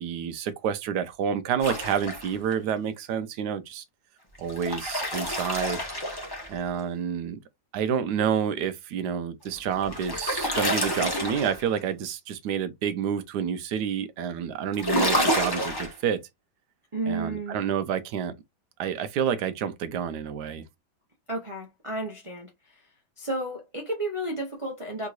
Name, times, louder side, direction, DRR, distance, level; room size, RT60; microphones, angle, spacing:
voice 1, 0.0-3.8 4.4-5.8 6.5-7.4 7.7-16.2 17.1-18.3 18.8-20.6, right 8 dB, 75° right, 1.1 m, -29 dB
sound 1, 1.6-2.5 4.3-6.8 9.4-11.8 14.7-15.9, equal, 20° left, 0.7 m, -28 dB
voice 2, 16.9-17.6 21.3-22.5 23.2-25.1, right 2 dB, 30° right, 0.5 m, -32 dB
3.6 x 2.9 x 2.4 m
omnidirectional pair, 1.9 m